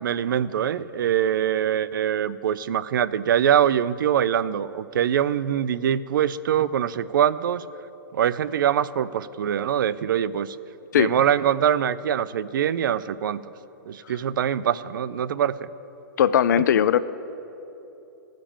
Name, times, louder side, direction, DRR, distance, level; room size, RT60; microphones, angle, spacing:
voice 1, 0.0-7.6 8.1-10.6 10.9-13.4 13.9-15.7, right 9 dB, 70° right, 16 dB, 0.4 m, -23 dB
voice 2, 16.2-17.0, left 9 dB, 60° left, 16 dB, 0.4 m, -19 dB
14.0 x 5.2 x 7.1 m, 3.0 s
hypercardioid pair, 170°, 11 cm